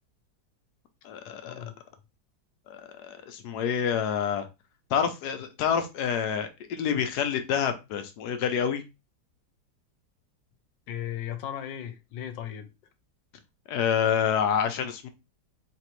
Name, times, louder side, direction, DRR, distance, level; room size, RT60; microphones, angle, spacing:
voice 1, 1.0-1.5 2.7-4.5 4.9-8.8 13.7-15.1, left 8 dB, 70° left, 1.1 m, -27 dB
voice 2, 10.9-12.7, left 10 dB, 90° left, 1.4 m, -36 dB
4.1 x 3.0 x 3.0 m
omnidirectional pair, 2.0 m